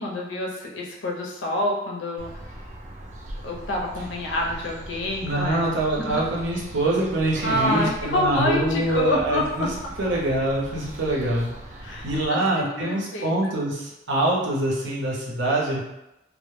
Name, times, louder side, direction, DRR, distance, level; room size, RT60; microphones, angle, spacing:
voice 1, 0.0-2.4 3.4-5.7 6.0-6.2 7.4-9.7 11.8-13.5, left 1 dB, 80° left, -1 dB, 0.5 m, -27 dB
sound 1, 2.2-12.3, right 1 dB, 40° right, 0.3 m, -39 dB
voice 2, 5.2-9.7 10.0-11.5 11.7-15.8, right 1 dB, 70° right, -4 dB, 0.7 m, -25 dB
2.1 x 2.0 x 3.1 m, 0.93 s
head